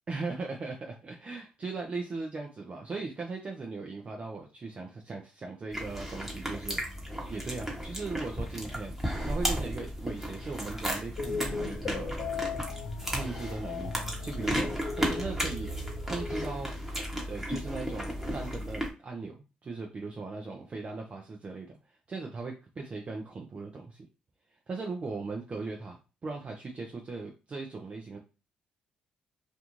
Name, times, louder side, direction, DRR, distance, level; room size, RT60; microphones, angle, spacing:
voice 1, 0.1-6.8 7.3-12.1 13.1-16.7 17.2-24.0 24.7-28.2, right 3 dB, 40° right, 0 dB, 0.5 m, -38 dB
sound 1, 5.7-18.9, equal, 10° right, 1.0 m, -34 dB
sound 2, 11.2-16.5, left 4 dB, 70° left, 0.5 m, -38 dB
2.5 x 2.2 x 3.0 m, 0.30 s
supercardioid pair, 55°, 3 cm